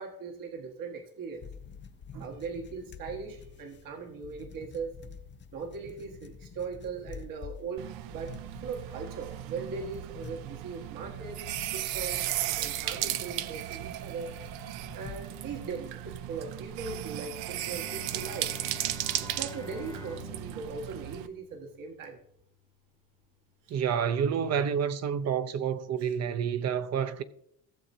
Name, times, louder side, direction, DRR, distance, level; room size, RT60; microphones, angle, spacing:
voice 1, 0.0-1.4 2.1-4.9 5.5-8.3 8.6-12.2 12.6-14.4 14.9-18.5 19.2-22.2 23.7-23.8 26.0-26.1, right 5 dB, 65° right, 1.7 m, -39 dB
sound 1, 1.3-15.6, left 6 dB, 30° left, 0.6 m, -49 dB
sound 2, 7.8-21.3, right 13 dB, 85° right, 0.6 m, -36 dB
Bowed string instrument, 17.4-22.7, left 5 dB, 10° left, 1.0 m, -48 dB
voice 2, 23.7-27.2, right 7 dB, 45° right, 0.7 m, -29 dB
15.5 x 7.4 x 2.8 m
cardioid pair, 115°, 36 cm